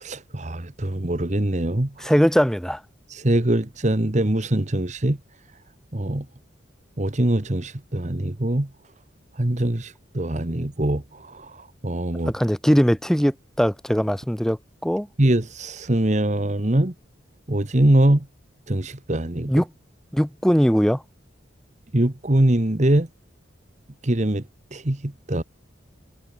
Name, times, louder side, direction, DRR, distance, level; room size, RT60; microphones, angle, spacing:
voice 1, 0.0-1.9 3.1-5.2 5.9-6.2 7.0-8.7 9.4-11.0 11.8-12.3 15.2-16.9 17.5-18.2 18.7-19.5 21.9-23.1 24.0-24.4 24.7-25.4, right 1 dB, 35° right, 1.3 m, -22 dB
voice 2, 2.0-2.8 12.3-15.1 19.5-19.7 20.1-21.0, equal, ahead, 2.0 m, -20 dB
head